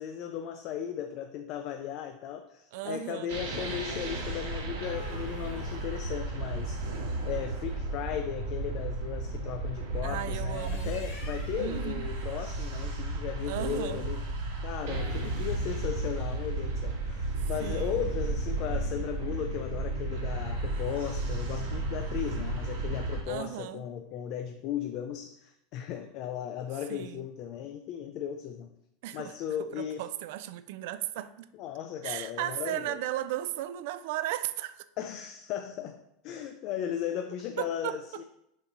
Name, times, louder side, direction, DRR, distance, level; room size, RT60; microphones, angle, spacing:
voice 1, 0.0-6.9 7.2-14.2 14.6-28.7 29.1-30.0 31.6-33.0 35.0-38.2, left 9 dB, 35° left, 0.4 m, -36 dB
voice 2, 2.7-3.4 10.0-10.9 11.6-12.0 13.5-14.0 17.6-18.1 23.3-23.9 26.9-27.3 29.0-29.3 29.7-31.5 32.0-34.8 37.6-38.2, right 13 dB, 55° right, 0.3 m, -36 dB
sound 1, 3.3-23.2, right 2 dB, 75° right, 1.7 m, -33 dB
sound 2, 4.8-7.6 10.3-11.8 14.8-15.7, left 3 dB, 55° left, 2.5 m, -51 dB
7.3 x 3.0 x 5.2 m
supercardioid pair, 180°, 0 cm